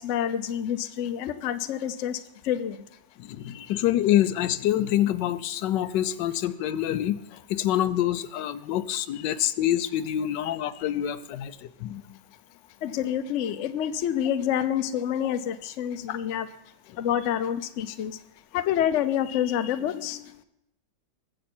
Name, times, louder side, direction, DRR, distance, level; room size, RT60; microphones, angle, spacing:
voice 1, 0.0-2.2 2.4-2.8 3.5-3.8 10.4-10.6 12.8-16.5 17.0-18.2 18.5-20.3, left 10 dB, 60° left, 10 dB, 0.8 m, -28 dB
voice 2, 3.2-12.0 16.1-16.2, left 12 dB, 85° left, 13 dB, 1.3 m, -26 dB
20.5 x 7.8 x 4.3 m, 0.84 s
omnidirectional pair, 1.9 m